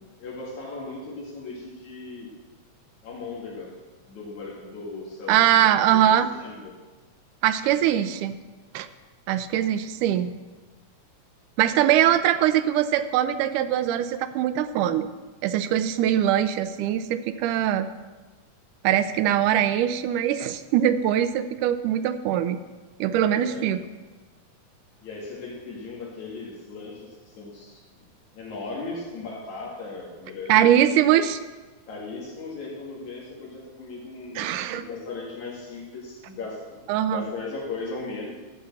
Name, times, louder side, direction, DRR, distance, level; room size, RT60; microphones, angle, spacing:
voice 1, 0.2-2.3 3.0-3.8 4.1-6.7 23.2-23.7 25.0-28.0 28.3-30.7 31.9-38.3, left 3 dB, 65° left, -3 dB, 3.8 m, -37 dB
voice 2, 5.3-6.3 7.4-8.4 8.7-8.9 9.3-10.4 11.6-15.1 15.4-17.9 18.8-22.6 23.0-23.8 30.5-31.4 34.4-34.9 36.9-37.3, right 11 dB, 85° right, 11 dB, 2.2 m, -22 dB
13.0 x 5.7 x 7.5 m, 1.3 s
omnidirectional pair, 3.6 m